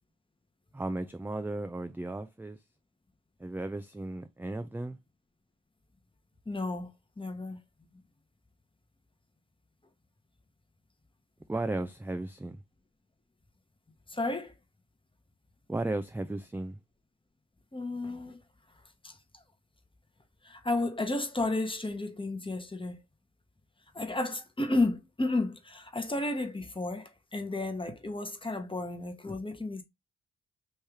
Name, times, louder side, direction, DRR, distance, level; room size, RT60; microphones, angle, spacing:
voice 1, 0.7-2.6 3.4-5.0 11.5-12.6 15.7-16.8, right 2 dB, 5° right, 0.4 m, -35 dB
voice 2, 6.5-6.9 7.2-7.6 14.1-14.5 17.7-18.4 19.0-19.2 20.4-23.0 23.9-29.8, left 2 dB, 15° left, 1.0 m, -32 dB
3.2 x 2.7 x 3.5 m
cardioid pair, 50°, 32 cm